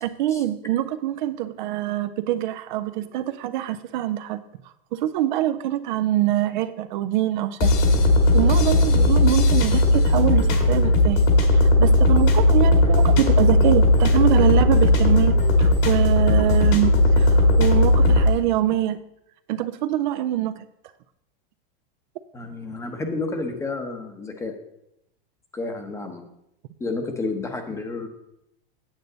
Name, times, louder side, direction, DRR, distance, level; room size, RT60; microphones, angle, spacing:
voice 1, 0.0-7.7 8.3-15.3 15.6-19.0 19.5-20.7, right 13 dB, 55° right, 11 dB, 0.5 m, -24 dB
sound 1, 7.6-18.3, left 1 dB, 55° left, 1.8 m, -17 dB
voice 2, 22.3-24.5 25.5-26.2 26.8-28.1, left 3 dB, 10° left, 6 dB, 0.8 m, -30 dB
9.0 x 7.8 x 3.9 m, 0.81 s
supercardioid pair, 160°, 29 cm